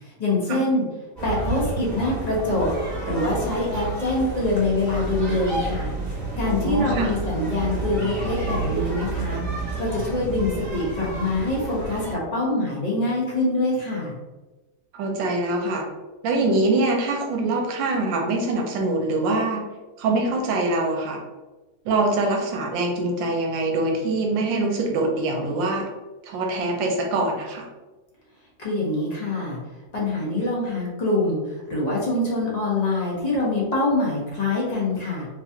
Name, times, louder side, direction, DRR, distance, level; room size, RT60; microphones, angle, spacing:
voice 1, 0.2-0.8 1.2-2.7 3.0-5.9 6.4-9.4 9.8-14.1 28.6-29.6 29.9-31.4 31.7-35.3, left 2 dB, 30° left, -5 dB, 0.9 m, -24 dB
sound 1, 1.2-12.1, right 2 dB, 10° right, 1.1 m, -30 dB
voice 2, 6.4-7.1 14.9-15.9 16.2-19.6 20.0-21.2 21.8-25.9 26.2-27.7, right 2 dB, 80° right, 2 dB, 1.4 m, -24 dB
3.5 x 3.0 x 2.8 m, 1.1 s
omnidirectional pair, 2.0 m